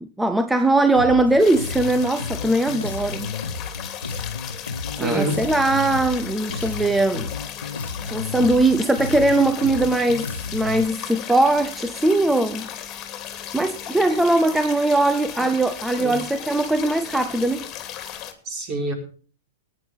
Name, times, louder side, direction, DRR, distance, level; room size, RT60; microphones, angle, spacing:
voice 1, 0.0-3.3 5.0-7.3 8.1-12.7 13.5-17.7, right 2 dB, 5° right, 0.7 m, -20 dB
Bass guitar, 1.0-10.8, left 4 dB, 80° left, 1.3 m, -32 dB
sound 1, 1.4-18.3, left 10 dB, 30° left, 2.7 m, -36 dB
voice 2, 5.0-5.4 15.4-15.5 16.0-16.2 18.4-18.9, right 2 dB, 30° right, 4.8 m, -26 dB
20.5 x 10.0 x 3.5 m
figure-of-eight pair, 100°, 0 cm